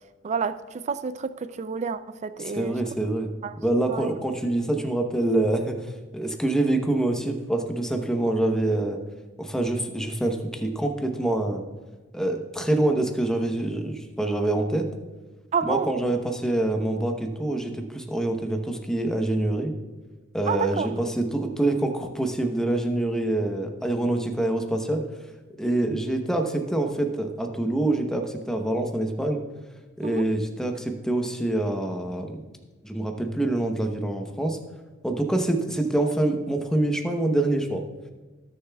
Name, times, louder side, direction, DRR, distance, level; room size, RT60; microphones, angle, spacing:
voice 1, 0.2-2.8 3.4-3.5 3.9-4.1 15.5-15.9 20.5-20.9 30.0-30.2, right 6 dB, 35° right, 0.3 m, -29 dB
voice 2, 2.4-3.3 3.6-9.0 9.4-11.6 12.1-14.9 15.6-19.7 20.3-25.1 25.6-29.4 30.0-32.4 32.8-34.6 35.0-37.8, right 1 dB, 5° left, 0.8 m, -26 dB
19.0 x 6.7 x 2.3 m
head